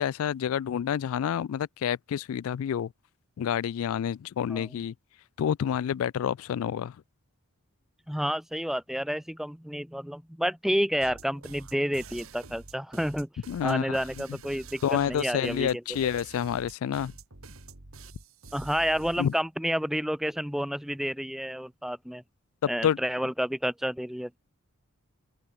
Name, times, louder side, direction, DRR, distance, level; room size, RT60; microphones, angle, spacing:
voice 1, 0.0-2.9 3.4-4.9 5.4-7.0 13.5-14.0 14.8-17.1 19.2-19.3 22.6-23.0, left 9 dB, 70° left, 0.3 m, -28 dB
voice 2, 8.1-13.3 13.6-15.8 18.5-22.2 22.7-24.4, equal, ahead, 0.6 m, -30 dB
sound 1, 11.0-19.4, right 3 dB, 70° right, 2.9 m, -47 dB
head